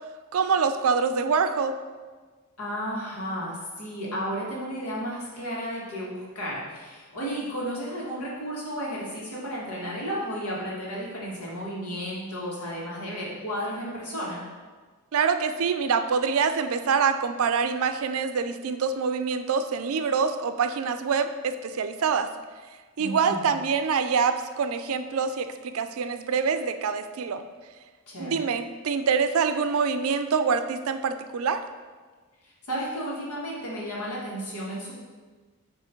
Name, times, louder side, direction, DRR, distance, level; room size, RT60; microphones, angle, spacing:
voice 1, 0.3-1.8 15.1-22.3 23.0-27.4 28.2-31.6, right 5 dB, 65° right, 9 dB, 0.4 m, -25 dB
voice 2, 2.6-14.4 23.0-23.5 28.1-28.4 32.4-34.9, equal, 85° left, -5 dB, 1.8 m, -33 dB
7.8 x 3.1 x 4.5 m, 1.4 s
head